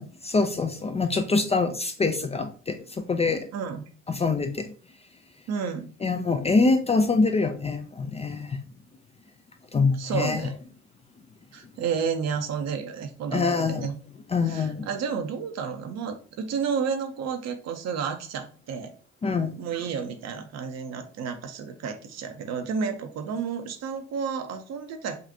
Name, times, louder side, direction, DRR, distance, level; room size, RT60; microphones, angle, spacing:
voice 1, 0.0-3.5 4.1-4.7 6.0-8.6 9.7-10.4 13.3-13.9 14.3-14.9 19.2-19.6, left 4 dB, 20° left, 6 dB, 0.4 m, -25 dB
voice 2, 3.5-3.9 5.5-5.9 10.0-10.5 11.5-14.0 14.5-18.9 19.6-25.2, right 6 dB, 50° right, 6 dB, 0.7 m, -31 dB
5.2 x 2.5 x 2.7 m, 0.41 s
hypercardioid pair, 55°, 34 cm